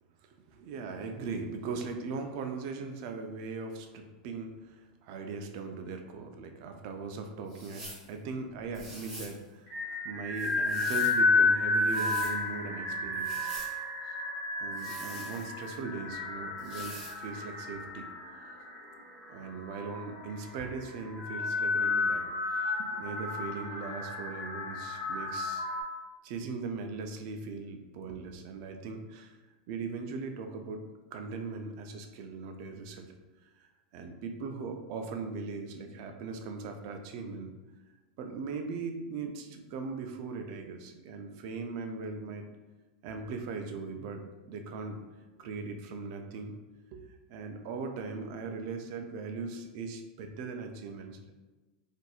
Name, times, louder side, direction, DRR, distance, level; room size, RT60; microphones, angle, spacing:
voice 1, 0.5-13.5 14.1-14.2 14.6-18.1 19.3-25.7 26.2-29.4 29.7-33.1 33.6-37.5 38.2-42.4 43.0-45.0 45.4-46.5 46.9-51.3, right 4 dB, 40° right, 5 dB, 0.4 m, -39 dB
sound 1, 7.5-8.1 8.7-9.4 10.3-11.2 11.7-12.4 13.1-13.7 14.7-15.7 16.6-17.2, right 1 dB, 10° right, 1.1 m, -45 dB
sound 2, 9.7-25.8, left 3 dB, 35° left, 1.0 m, -32 dB
4.1 x 2.5 x 2.3 m, 1.2 s
supercardioid pair, 165°, 4 cm